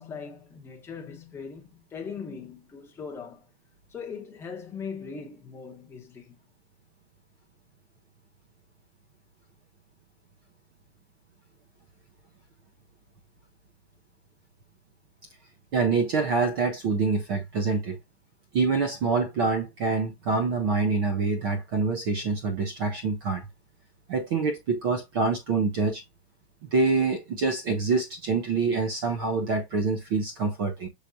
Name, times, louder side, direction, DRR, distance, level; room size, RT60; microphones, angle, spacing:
voice 1, 0.0-3.5 3.9-6.3, left 6 dB, 10° left, 0.8 m, -40 dB
voice 2, 15.7-18.0 18.5-23.5 24.1-26.0 26.7-30.9, right 4 dB, 25° right, 0.5 m, -26 dB
6.2 x 3.3 x 2.6 m
supercardioid pair, 165°, 32 cm